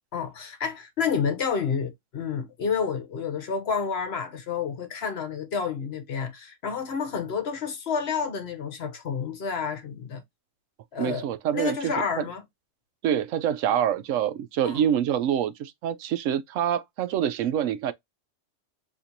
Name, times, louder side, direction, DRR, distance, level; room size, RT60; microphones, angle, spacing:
voice 1, 0.1-10.2 10.9-11.3 11.5-12.4 14.6-14.8, left 6 dB, 55° left, 1.0 m, -29 dB
voice 2, 11.0-12.3 13.0-17.9, right 9 dB, 85° right, 1.0 m, -26 dB
4.3 x 2.9 x 2.5 m
omnidirectional pair, 1.3 m